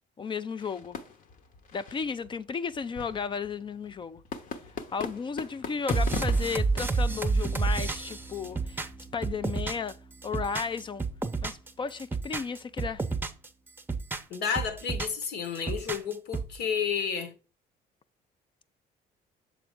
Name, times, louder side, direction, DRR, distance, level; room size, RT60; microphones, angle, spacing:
voice 1, 0.2-1.0 1.7-4.2 4.9-8.8 9.1-10.0 10.2-11.0 11.4-13.0, left 5 dB, 30° left, 0.3 m, -34 dB
sound 1, 0.6-9.2, left 5 dB, 55° left, 1.0 m, -41 dB
sound 2, 5.9-9.9 10.2-11.7 12.0-13.5 13.8-15.2 15.5-16.6, right 4 dB, 10° right, 0.7 m, -30 dB
voice 2, 14.3-17.3, left 7 dB, 80° left, 1.4 m, -31 dB
6.9 x 4.1 x 3.6 m
cardioid pair, 110°, 17 cm